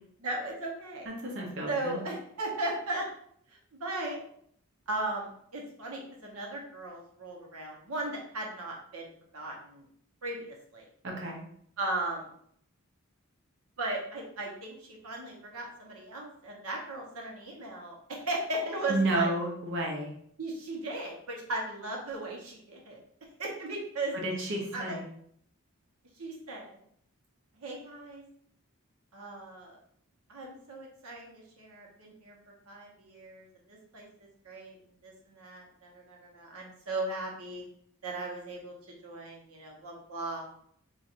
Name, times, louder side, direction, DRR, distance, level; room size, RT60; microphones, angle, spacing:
voice 1, 0.2-1.1 1.7-3.1 3.8-4.2 4.9-9.8 10.2-10.8 11.8-12.3 13.8-19.3 20.4-23.0 23.4-24.2 24.7-25.0 26.2-26.8 27.6-28.2 29.1-29.8 30.3-32.3 32.7-34.8 35.0-37.6 38.0-38.7 39.0-40.4, right 2 dB, 85° right, -1 dB, 1.0 m, -37 dB
voice 2, 1.1-2.0 11.0-11.4 18.9-20.1 24.1-25.0, right 2 dB, 60° right, -1 dB, 0.8 m, -31 dB
4.2 x 2.5 x 2.5 m, 0.65 s
head